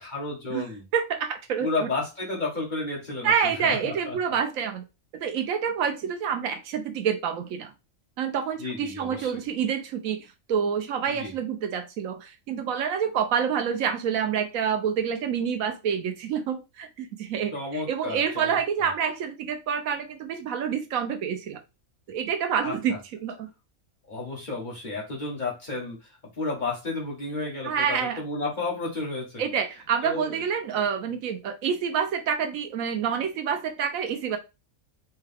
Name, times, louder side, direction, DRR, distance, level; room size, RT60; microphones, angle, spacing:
voice 1, 0.0-0.8 1.6-4.2 8.6-9.4 11.2-11.3 17.5-18.6 22.6-23.0 24.1-29.4 30.0-30.4 30.7-30.9, left 3 dB, 35° left, -2 dB, 1.4 m, -32 dB
voice 2, 0.9-1.9 3.2-4.8 5.1-7.7 8.2-21.6 22.1-22.9 23.2-23.5 27.6-28.2 29.4-34.4, right 7 dB, 80° right, 7 dB, 1.1 m, -27 dB
4.5 x 2.2 x 3.4 m, 0.26 s
omnidirectional pair, 1.4 m